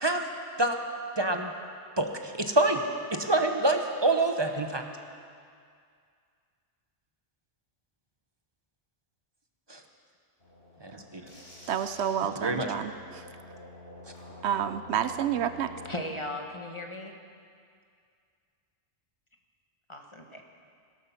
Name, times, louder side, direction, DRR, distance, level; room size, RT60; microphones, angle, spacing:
voice 1, 1.2-1.5 2.0-2.8 3.2-4.8 9.7-9.8 10.8-11.2 12.4-12.7, right 2 dB, 25° right, 4 dB, 1.0 m, -26 dB
sound 1, 10.4-16.0, left 1 dB, 60° left, 4.1 m, -48 dB
voice 2, 11.7-13.2 14.4-15.7, right 9 dB, 75° right, 11 dB, 0.8 m, -29 dB
voice 3, 15.9-17.2 19.9-20.4, left 1 dB, 25° left, 2 dB, 1.2 m, -37 dB
17.0 x 12.5 x 5.8 m, 2.2 s
omnidirectional pair, 1.1 m